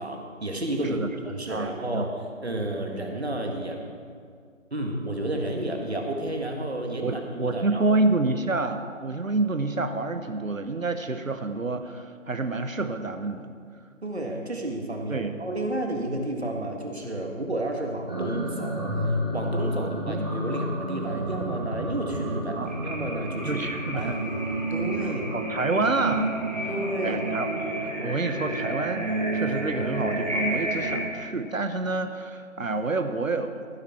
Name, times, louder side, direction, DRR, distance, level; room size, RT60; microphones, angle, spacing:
voice 1, 0.0-2.1 2.4-3.8 4.7-8.0 14.0-19.0 19.3-23.6 23.9-24.1 24.7-25.3 26.7-27.2, right 1 dB, 55° right, 2 dB, 2.0 m, -31 dB
voice 2, 1.5-2.1 7.0-13.5 15.1-15.3 19.8-20.3 22.5-22.7 23.5-24.2 25.3-26.3 26.6-26.7 27.0-27.5 27.8-29.1 29.3-33.8, right 3 dB, 80° right, 8 dB, 1.1 m, -28 dB
sound 1, 18.1-31.0, right 1 dB, 30° right, 2.3 m, -30 dB
15.0 x 11.0 x 4.5 m, 2.1 s
figure-of-eight pair, 165°, 40 cm